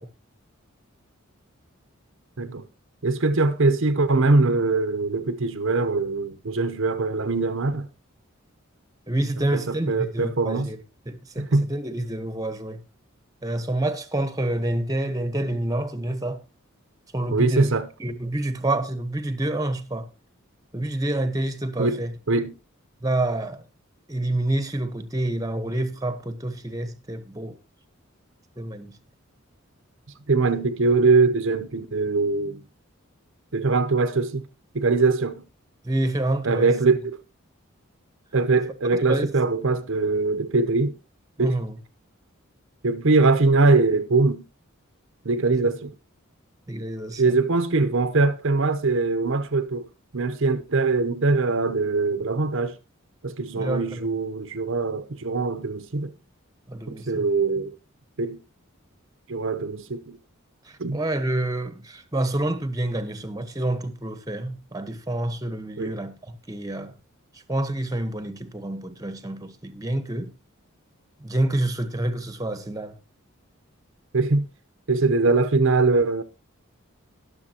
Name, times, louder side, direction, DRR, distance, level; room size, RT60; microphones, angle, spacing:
voice 1, 3.0-7.9 9.5-10.7 11.4-11.7 17.3-17.9 21.8-22.5 30.3-32.6 33.5-34.5 34.7-35.4 36.4-37.2 38.3-41.0 41.4-41.6 42.8-44.5 45.2-45.9 47.2-49.9 50.1-52.8 53.2-56.1 56.9-57.7 58.2-58.4 59.3-60.2 60.8-61.0 65.8-66.0 74.1-74.5 74.9-76.2, right 3 dB, 65° right, 0.8 m, -22 dB
voice 2, 9.1-10.8 11.1-12.8 13.4-16.4 17.1-17.7 18.0-20.1 20.7-22.1 23.0-23.6 24.1-27.5 28.6-28.9 35.8-36.7 39.1-39.3 41.4-41.8 46.7-47.4 53.6-54.1 56.7-57.3 60.9-66.9 67.5-70.3 71.2-72.9, right 1 dB, 15° right, 1.1 m, -28 dB
21.0 x 7.1 x 2.9 m
head